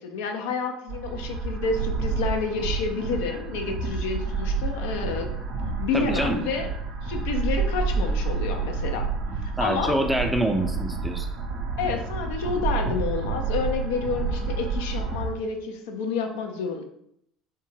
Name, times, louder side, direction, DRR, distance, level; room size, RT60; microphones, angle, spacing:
voice 1, 0.0-5.3 5.8-6.7 7.0-9.1 9.6-9.9 11.8-16.8, left 4 dB, 70° left, 4 dB, 0.4 m, -29 dB
sound 1, 0.9-15.3, right 4 dB, 60° right, 0.5 m, -29 dB
voice 2, 5.9-6.5 9.6-11.3, right 1 dB, 5° right, 5 dB, 0.4 m, -26 dB
2.7 x 2.2 x 3.1 m, 0.73 s
figure-of-eight pair, 65°, 0 cm